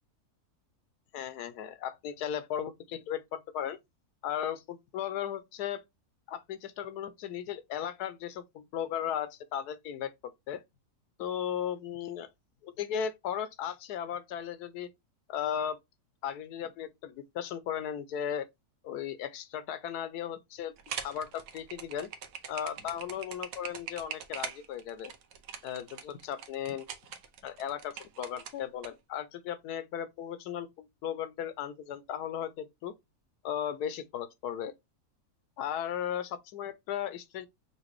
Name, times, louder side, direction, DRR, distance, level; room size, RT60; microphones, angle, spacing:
voice 1, 1.1-3.8 4.2-5.8 6.3-10.1 10.5-10.6 11.2-12.3 12.6-14.9 15.3-15.8 16.2-18.5 18.8-20.7 21.0-22.1 22.5-25.1 25.6-26.9 27.4-32.9 33.4-34.7 35.6-37.5, left 9 dB, 85° left, 1.1 m, -36 dB
sound 1, 20.8-28.9, right 7 dB, 65° right, 1.0 m, -42 dB
5.7 x 2.5 x 3.1 m
omnidirectional pair, 1.7 m